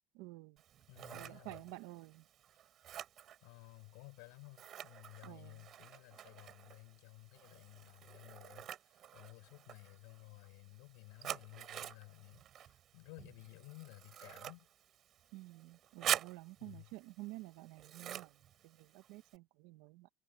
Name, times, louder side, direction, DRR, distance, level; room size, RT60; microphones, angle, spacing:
voice 1, 0.1-0.6 1.1-2.3 5.2-5.7 15.3-20.1, right 20 dB, 60° right, 1.4 m, -51 dB
Scissors, 0.6-19.4, right 11 dB, 30° right, 4.5 m, -47 dB
voice 2, 0.9-1.6 3.4-14.7 16.6-16.9, left 34 dB, 70° left, 7.2 m, -56 dB
cardioid pair, 180°, 0 cm